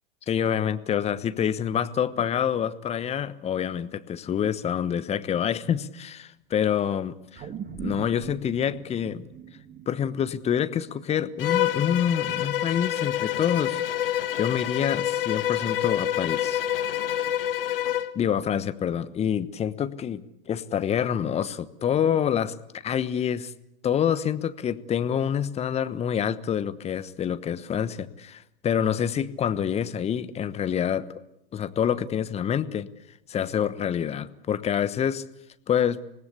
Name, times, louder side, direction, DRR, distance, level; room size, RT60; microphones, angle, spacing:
voice 1, 0.3-7.5 7.8-9.3 9.9-16.6 17.1-17.3 18.1-23.5 23.8-31.1 31.5-32.9 33.3-35.2 35.7-36.0, left 9 dB, 20° left, 14 dB, 1.1 m, -27 dB
sound 1, 7.3-11.8 12.3-12.4, right 8 dB, 30° right, 2.4 m, -41 dB
Bowed string instrument, 11.4-18.1, left 11 dB, 70° left, 1.5 m, -27 dB
25.5 x 19.5 x 8.4 m, 0.83 s
hypercardioid pair, 100°, 29 cm